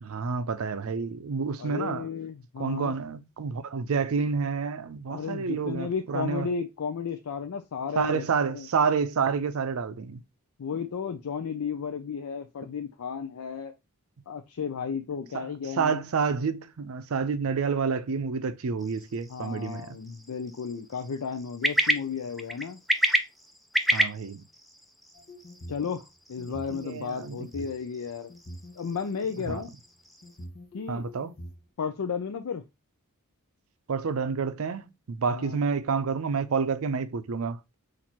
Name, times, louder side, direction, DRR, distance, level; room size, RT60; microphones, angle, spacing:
voice 1, 0.0-2.1 2.6-6.5 8.0-10.2 15.3-15.5 15.8-20.0 23.9-24.5 26.5-27.4 29.5-29.6 30.9-31.3 33.9-37.8, right 5 dB, 65° right, 0.5 m, -29 dB
voice 2, 1.6-3.0 5.1-8.7 10.6-13.7 14.3-16.0 19.3-22.8 25.7-28.3 28.8-29.7 30.7-31.0 31.8-32.6 35.3-35.6, left 6 dB, 80° left, 0.4 m, -33 dB
sound 1, 18.8-30.4, right 1 dB, ahead, 0.3 m, -32 dB
sound 2, 25.1-25.8 26.4-27.8 28.3-29.6 30.2-31.5, equal, 45° left, 0.9 m, -44 dB
4.4 x 2.6 x 4.2 m
head